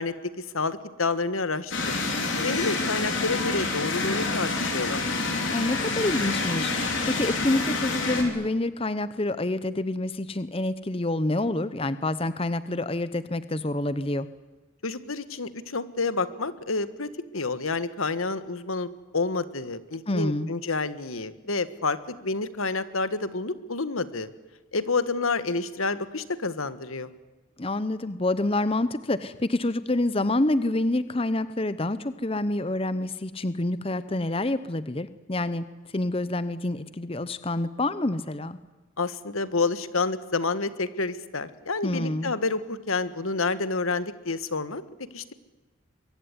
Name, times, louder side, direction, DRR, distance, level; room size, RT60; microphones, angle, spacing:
voice 1, 0.0-1.7 2.4-5.0 14.8-24.3 24.7-27.1 39.0-44.8 45.1-45.3, left 3 dB, 85° left, 13 dB, 1.5 m, -29 dB
sound 1, 1.7-8.2, left 3 dB, 65° left, 4.6 m, -27 dB
voice 2, 5.5-14.3 20.1-20.5 27.6-35.6 35.9-38.6 41.8-42.3, left 2 dB, 25° left, 14 dB, 0.8 m, -27 dB
23.5 x 23.0 x 9.7 m, 1.2 s
head